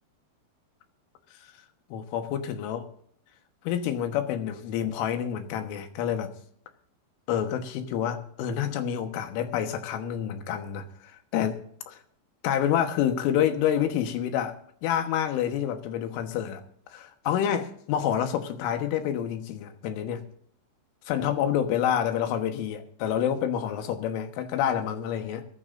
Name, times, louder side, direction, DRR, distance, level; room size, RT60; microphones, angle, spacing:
voice 1, 1.9-2.9 3.7-6.3 7.3-11.6 11.9-12.0 12.4-16.6 16.9-20.2 21.1-25.5, left 9 dB, 90° left, 3.8 m, -28 dB
23.0 x 12.0 x 2.6 m
omnidirectional pair, 5.4 m